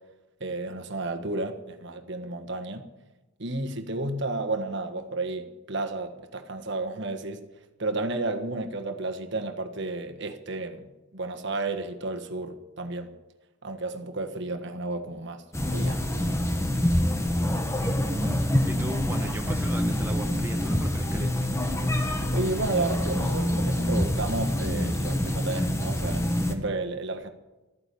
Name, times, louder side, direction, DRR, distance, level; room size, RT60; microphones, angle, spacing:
voice 1, 0.4-2.9 3.4-7.4 7.8-13.1 13.6-15.4 15.7-16.3 22.3-27.3, right 2 dB, 55° right, 1.5 m, -32 dB
sound 1, 15.5-26.5, left 1 dB, 15° left, 1.2 m, -26 dB
voice 2, 17.9-21.5, right 1 dB, 10° right, 1.1 m, -37 dB
14.0 x 10.0 x 8.4 m
head